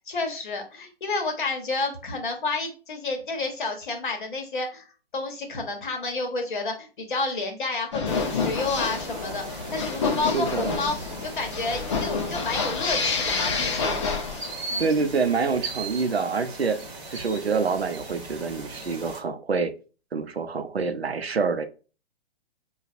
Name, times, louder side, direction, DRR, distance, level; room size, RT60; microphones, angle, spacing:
voice 1, 0.1-4.9 5.1-14.0 14.7-14.8, left 3 dB, 55° left, 4 dB, 1.1 m, -30 dB
sound 1, 7.9-14.8, left 4 dB, 30° left, 0.5 m, -28 dB
sound 2, 8.1-19.2, right 2 dB, 25° right, 1.2 m, -38 dB
voice 2, 10.3-10.8 14.8-16.8 17.1-19.7 20.1-21.6, right 5 dB, 80° right, 8 dB, 0.6 m, -26 dB
5.1 x 2.3 x 2.5 m, 0.35 s
figure-of-eight pair, 125°, 31 cm